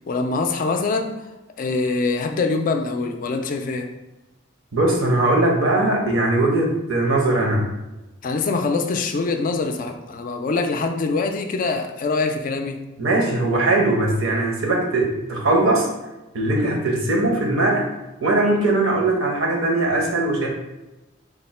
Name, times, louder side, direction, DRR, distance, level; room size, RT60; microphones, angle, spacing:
voice 1, 0.1-1.3 1.6-3.9 8.2-12.8, left 3 dB, 40° left, 6 dB, 0.3 m, -24 dB
voice 2, 4.7-7.7 13.0-15.9 16.3-17.9 18.2-20.5, right 2 dB, 80° right, -1 dB, 0.8 m, -20 dB
3.6 x 2.1 x 4.2 m, 1.0 s
head